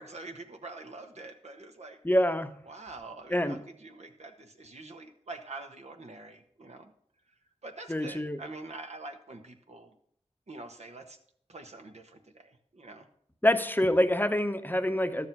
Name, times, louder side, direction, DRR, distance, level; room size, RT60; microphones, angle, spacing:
voice 1, 0.0-2.0 2.7-6.9 7.6-10.0 10.5-11.2 11.5-13.1, right 2 dB, 75° right, 4 dB, 1.3 m, -45 dB
voice 2, 2.0-2.5 3.3-3.6 7.9-8.4 13.4-15.3, left 1 dB, 15° left, 8 dB, 0.8 m, -26 dB
12.5 x 7.0 x 5.4 m, 0.67 s
wide cardioid pair, 55°, 11 cm